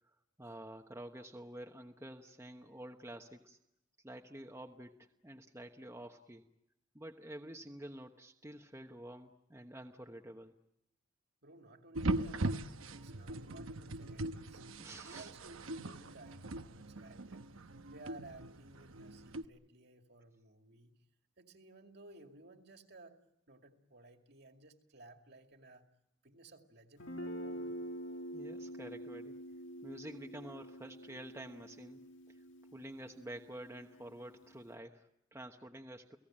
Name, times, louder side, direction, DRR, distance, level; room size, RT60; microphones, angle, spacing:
voice 1, 0.4-3.6 4.0-6.4 6.9-10.5 14.8-15.3 28.3-29.4 29.8-32.0 32.3-32.4 32.7-36.2, right 1 dB, 15° right, 2 dB, 1.1 m, -49 dB
voice 2, 11.4-14.6 15.0-20.9 21.4-23.2 23.5-25.9 26.2-27.7, right 2 dB, 50° right, 4 dB, 2.3 m, -57 dB
sound 1, 12.0-19.5, right 2 dB, 80° right, 1.0 m, -40 dB
Guitar, 27.0-34.7, equal, 65° left, 2.1 m, -47 dB
30.0 x 18.0 x 8.8 m, 0.83 s
head